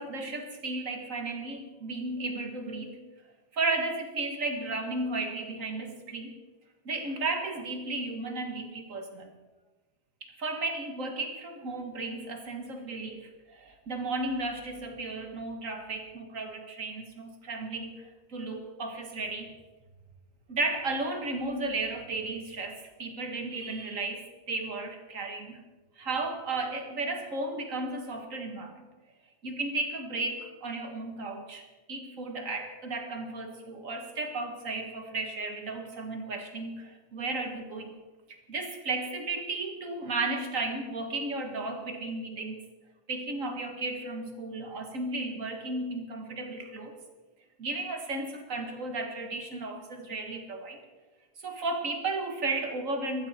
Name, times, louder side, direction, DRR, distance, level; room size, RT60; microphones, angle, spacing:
voice 1, 0.0-3.0 3.5-6.4 6.9-9.3 10.2-19.5 20.5-25.6 26.0-28.8 29.4-31.6 31.9-38.0 38.3-42.6 43.1-46.9 47.6-50.8 51.4-53.3, right 3 dB, 85° right, 5 dB, 2.1 m, -34 dB
20.0 x 14.0 x 4.4 m, 1.2 s
omnidirectional pair, 1.3 m